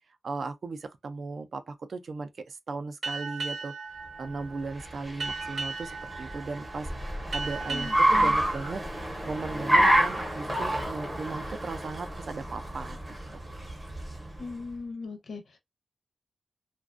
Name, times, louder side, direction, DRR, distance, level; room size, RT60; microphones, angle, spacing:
voice 1, 0.2-3.7 4.2-8.8 9.3-13.0 13.3-13.5, right 4 dB, 50° right, 0.3 m, -37 dB
Boat Water vehicle, 3.0-10.1, right 4 dB, 80° right, 0.7 m, -38 dB
Car, 4.4-14.6, right 1 dB, 15° right, 0.7 m, -29 dB
voice 2, 7.7-8.4 14.4-15.4, left 4 dB, 60° left, 0.5 m, -38 dB
2.4 x 2.2 x 2.4 m
wide cardioid pair, 175°, 0 cm